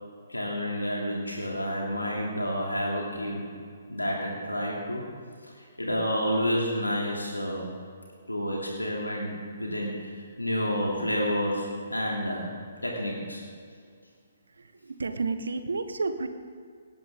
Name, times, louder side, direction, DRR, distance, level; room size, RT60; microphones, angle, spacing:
voice 1, 0.3-3.5 3.9-5.1 5.8-7.7 8.3-12.5 12.8-13.4, equal, 90° left, -3 dB, 2.9 m, -29 dB
voice 2, 14.8-16.3, right 4 dB, 70° right, 9 dB, 1.3 m, -30 dB
18.5 x 17.5 x 3.7 m, 2.1 s
figure-of-eight pair, 130°, 0 cm